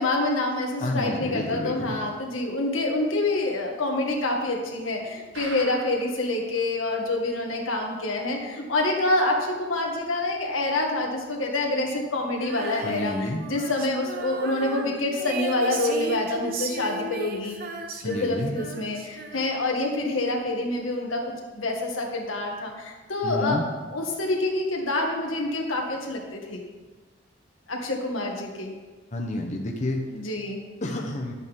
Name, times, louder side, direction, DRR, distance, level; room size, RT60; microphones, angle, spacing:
voice 1, 0.0-17.6 18.0-26.6 27.7-28.7 30.1-30.6, left 2 dB, 90° left, 0 dB, 1.7 m, -27 dB
voice 2, 0.8-2.0 12.8-13.4 18.0-18.5 23.2-23.7 29.1-30.0 30.8-31.3, left 1 dB, 35° left, 1 dB, 0.8 m, -29 dB
sound 1, 5.3-6.2 6.6-6.7 6.9-7.0 7.5-7.6, right 2 dB, 70° right, 1.7 m, -40 dB
Female singing, 12.4-19.8, right 3 dB, 50° right, 0.9 m, -36 dB
11.5 x 8.2 x 3.6 m, 1.3 s
head